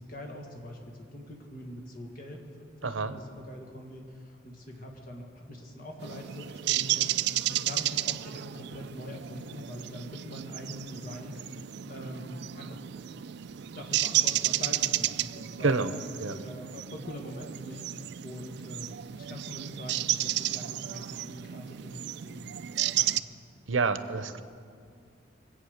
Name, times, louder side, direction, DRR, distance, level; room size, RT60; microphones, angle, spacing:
voice 1, 0.0-2.4 2.8-11.6 11.9-12.8 13.7-16.0 16.3-22.5 23.0-23.4, left 1 dB, 45° left, 1 dB, 1.8 m, -43 dB
voice 2, 2.8-3.2 15.6-15.9 16.2-16.4 23.7-24.4, right 4 dB, 80° right, 12 dB, 0.7 m, -28 dB
sound 1, 6.0-23.2, right 13 dB, 55° right, 0.3 m, -32 dB
23.0 x 8.6 x 6.5 m, 2.3 s
head